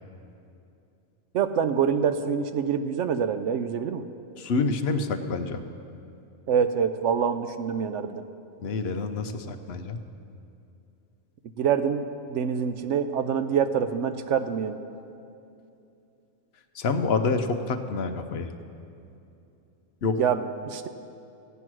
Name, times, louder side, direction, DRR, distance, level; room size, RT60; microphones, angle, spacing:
voice 1, 1.3-4.0 6.5-8.3 11.6-14.8 20.2-20.9, right 7 dB, 65° right, 10 dB, 0.8 m, -26 dB
voice 2, 4.4-5.6 8.6-10.0 16.7-18.5 20.0-20.2, left 4 dB, 55° left, 7 dB, 0.9 m, -27 dB
15.0 x 9.3 x 6.2 m, 2.7 s
omnidirectional pair, 1.5 m